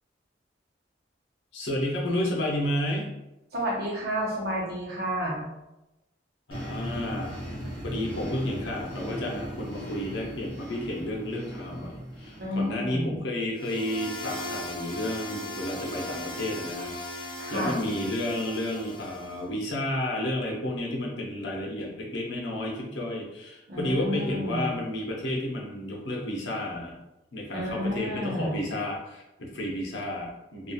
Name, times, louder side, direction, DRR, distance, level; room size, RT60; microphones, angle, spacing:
voice 1, 1.5-3.1 6.5-7.4 7.8-26.9 27.3-30.7, left 1 dB, 80° left, -2 dB, 0.7 m, -31 dB
voice 2, 3.5-5.5 12.4-13.2 17.4-17.8 23.7-24.8 27.5-28.6, equal, 60° right, -4 dB, 0.8 m, -30 dB
sound 1, 6.5-12.9, equal, 30° right, 1.2 m, -38 dB
sound 2, 13.6-19.4, left 2 dB, 25° left, 0.5 m, -38 dB
2.7 x 2.4 x 2.3 m, 0.95 s
head